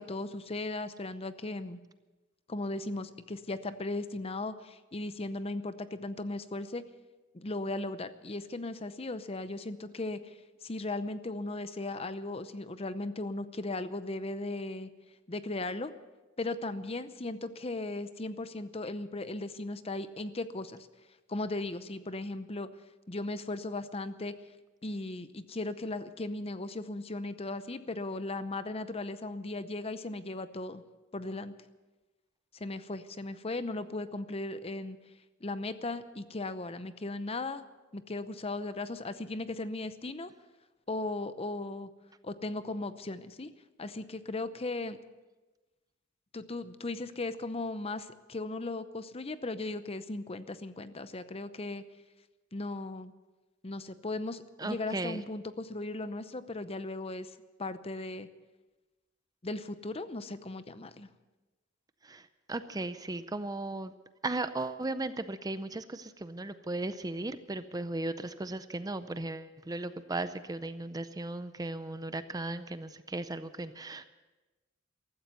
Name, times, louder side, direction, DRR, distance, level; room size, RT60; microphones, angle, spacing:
voice 1, 0.0-1.8 2.5-6.9 7.3-14.9 15.3-15.9 16.4-20.9 21.3-22.7 23.1-24.3 24.8-30.8 31.1-31.5 32.5-35.0 35.4-37.6 37.9-40.3 40.9-41.9 42.2-43.5 43.8-45.0 46.3-51.8 52.5-53.1 53.6-57.3 57.6-58.3 59.4-61.1, left 2 dB, 30° left, 12 dB, 0.7 m, -37 dB
voice 2, 54.6-55.2 62.0-63.9 64.2-74.1, right 2 dB, 20° right, 12 dB, 0.5 m, -36 dB
15.5 x 13.5 x 6.9 m, 1.1 s
head